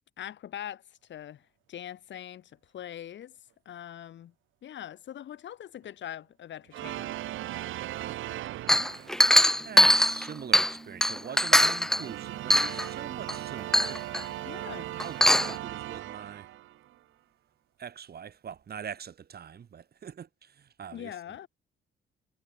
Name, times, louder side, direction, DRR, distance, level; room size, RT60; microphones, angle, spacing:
voice 1, 0.2-3.4 3.7-4.3 4.6-7.1 9.2-9.4 14.4-14.9 20.9-21.5, left 11 dB, 65° left, 2.4 m, -42 dB
sound 1, 6.7-9.5 11.8-17.0, right 14 dB, 80° right, 0.9 m, -38 dB
voice 2, 7.9-8.2 8.5-8.9 9.2-14.3 14.6-16.5 17.8-21.1, right 8 dB, 50° right, 4.2 m, -43 dB
Chink clink, 8.7-10.8 11.0-12.0 12.5-12.9 13.3-13.4 13.7-14.2 15.0-15.5, equal, ahead, 0.5 m, -21 dB
sound 2, 9.6-16.6, right 3 dB, 25° right, 4.1 m, -53 dB
cardioid pair, 90°, 20 cm